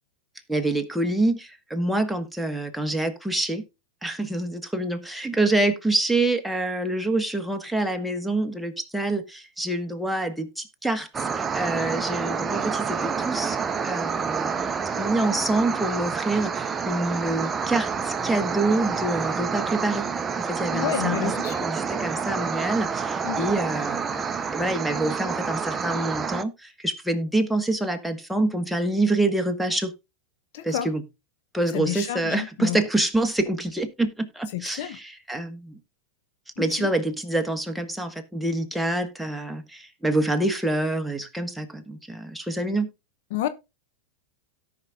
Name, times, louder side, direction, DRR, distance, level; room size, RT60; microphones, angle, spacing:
voice 1, 0.5-1.3 1.7-3.6 4.0-9.2 9.6-10.5 10.8-11.0 11.5-12.6 13.3-13.5 13.8-14.5 15.0-16.5 16.9-17.9 18.3-20.0 20.6-21.3 21.6-21.8 22.0-22.9 23.4-24.0 24.5-25.6 25.8-26.5 26.8-29.9 30.7-31.0 31.5-34.1 34.6-34.8 35.3-35.5 36.6-39.6 40.0-41.6 42.6-42.9, right 2 dB, ahead, 1.4 m, -25 dB
sound 1, 11.1-26.4, right 6 dB, 20° right, 0.7 m, -28 dB
voice 2, 20.7-21.7 23.2-23.5 30.5-30.9 31.7-32.8 34.5-35.0 36.6-36.9 43.3-43.5, left 13 dB, 60° left, 0.9 m, -30 dB
17.5 x 5.8 x 2.4 m
hypercardioid pair, 95°, 0 cm